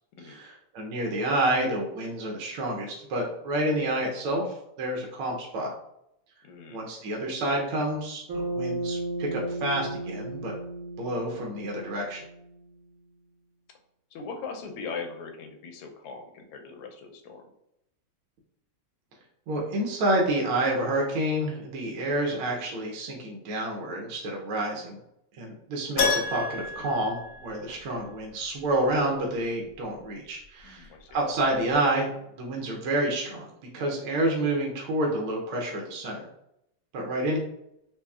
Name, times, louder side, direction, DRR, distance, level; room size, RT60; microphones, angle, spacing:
voice 1, 0.2-5.7 6.7-10.6 11.0-12.2 19.5-25.0 25.4-36.2 36.9-37.4, right 1 dB, 75° right, -1 dB, 1.5 m, -29 dB
voice 2, 6.4-6.8 7.2-7.3 14.1-17.5 22.3-22.6 30.6-31.2, left 5 dB, 90° left, 3 dB, 1.5 m, -40 dB
Bass guitar, 8.3-12.7, right 2 dB, 55° right, 1.2 m, -34 dB
Keyboard (musical), 26.0-28.0 28.3-28.4 31.1-31.2 31.4-31.5, left 4 dB, 60° left, 1.1 m, -29 dB
4.5 x 2.7 x 2.3 m, 0.80 s
omnidirectional pair, 2.4 m